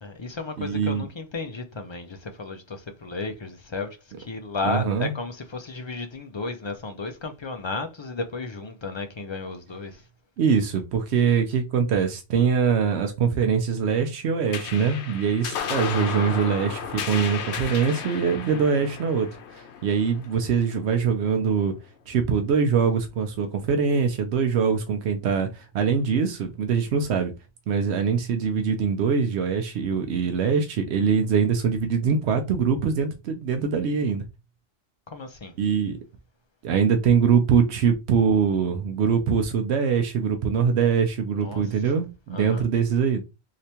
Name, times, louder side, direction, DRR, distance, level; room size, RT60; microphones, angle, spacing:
voice 1, 0.0-3.9 4.2-10.0 35.1-35.5 41.4-41.6 42.3-42.6, left 3 dB, 50° left, 0.3 m, -33 dB
voice 2, 0.6-1.0 4.6-5.1 10.4-21.7 22.1-27.3 27.7-34.2 35.6-36.0 36.6-43.2, right 6 dB, 80° right, 0.8 m, -23 dB
sound 1, 14.5-21.3, left 7 dB, 90° left, 0.9 m, -34 dB
3.3 x 2.8 x 2.8 m
omnidirectional pair, 1.1 m